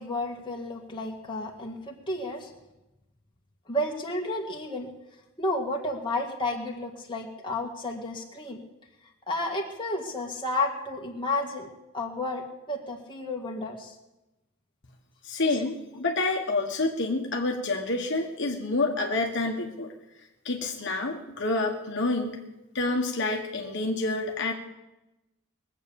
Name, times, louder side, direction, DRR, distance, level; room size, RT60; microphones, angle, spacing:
voice 1, 0.0-2.5 3.7-4.9 5.4-8.6 9.3-11.7 11.9-13.9 15.5-15.6, left 2 dB, 20° left, 0 dB, 1.9 m, -32 dB
voice 2, 15.2-19.9 20.4-22.4 22.7-24.5, left 2 dB, 55° left, 2 dB, 1.4 m, -28 dB
21.5 x 8.2 x 7.0 m, 0.99 s
head